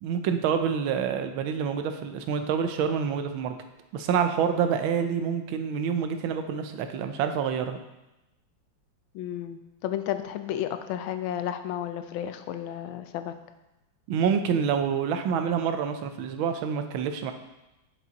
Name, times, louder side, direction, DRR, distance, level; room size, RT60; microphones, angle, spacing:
voice 1, 0.0-3.5 3.9-7.8 14.1-17.3, right 7 dB, 80° right, 7 dB, 1.4 m, -27 dB
voice 2, 9.1-13.3, left 11 dB, 85° left, 9 dB, 1.4 m, -32 dB
7.5 x 5.7 x 4.0 m, 0.98 s
omnidirectional pair, 2.2 m